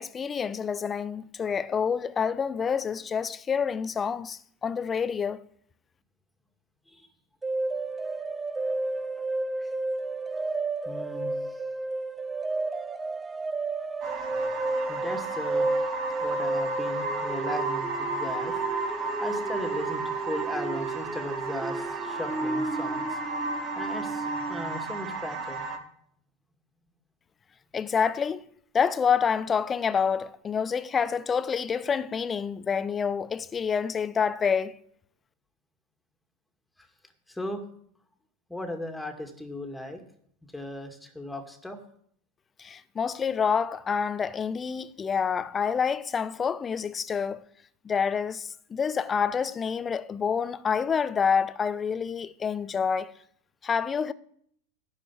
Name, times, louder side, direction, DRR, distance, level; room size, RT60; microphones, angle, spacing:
voice 1, 0.0-5.4 27.7-28.4 28.7-34.8 42.6-47.4 47.8-53.1 53.6-54.1, left 6 dB, 25° left, 0.7 m, -27 dB
sound 1, 7.4-24.8, right 3 dB, 15° right, 0.8 m, -32 dB
voice 2, 10.9-11.6 14.9-15.7 16.2-23.2 23.7-25.7 36.8-36.9 37.3-37.6 38.5-40.0 40.4-41.8, left 1 dB, 5° left, 2.1 m, -37 dB
sound 2, 14.0-25.8, right 3 dB, 35° right, 1.9 m, -33 dB
11.5 x 4.9 x 8.4 m
figure-of-eight pair, 85°, 0 cm